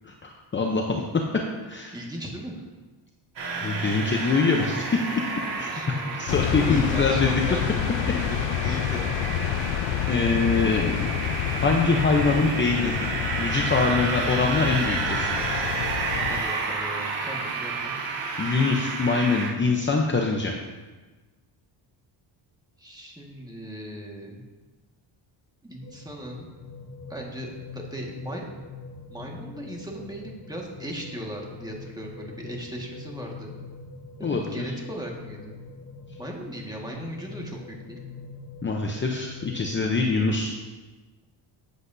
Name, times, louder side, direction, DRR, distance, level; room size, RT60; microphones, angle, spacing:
voice 1, 0.0-1.0 1.6-2.0 3.6-5.0 5.6-7.6 10.1-11.2 11.6-12.9 13.4-15.3 18.4-20.5 34.2-34.7 38.6-40.6, left 4 dB, 25° left, 1 dB, 0.8 m, -24 dB
voice 2, 1.9-2.6 5.7-5.9 6.6-7.8 8.3-9.1 16.3-17.9 22.8-24.4 25.6-26.5 27.1-28.5 29.1-33.6 34.2-35.6 36.2-38.0, equal, 10° right, -1 dB, 1.7 m, -37 dB
sound 1, 3.4-19.5, right 4 dB, 75° right, 3.1 m, -31 dB
sound 2, 6.3-16.4, left 10 dB, 75° left, 0.6 m, -28 dB
sound 3, 25.8-40.4, left 4 dB, 40° left, 1.3 m, -43 dB
13.5 x 8.2 x 2.7 m, 1.3 s
cardioid pair, 130°, 45 cm